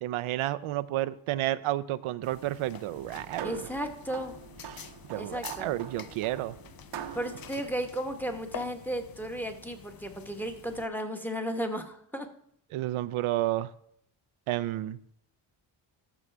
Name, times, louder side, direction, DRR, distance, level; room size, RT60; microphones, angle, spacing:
voice 1, 0.0-3.6 4.7-6.6 12.7-13.7 14.5-15.0, right 15 dB, 90° right, 13 dB, 0.5 m, -31 dB
sound 1, 2.2-10.8, left 9 dB, 50° left, 0.6 m, -48 dB
sound 2, 3.0-8.8, right 9 dB, 60° right, 0.8 m, -45 dB
voice 2, 3.4-4.3 5.1-5.7 7.1-12.3, right 1 dB, 5° left, 6 dB, 1.1 m, -34 dB
13.5 x 6.1 x 3.4 m, 0.70 s
cardioid pair, 100°, 48 cm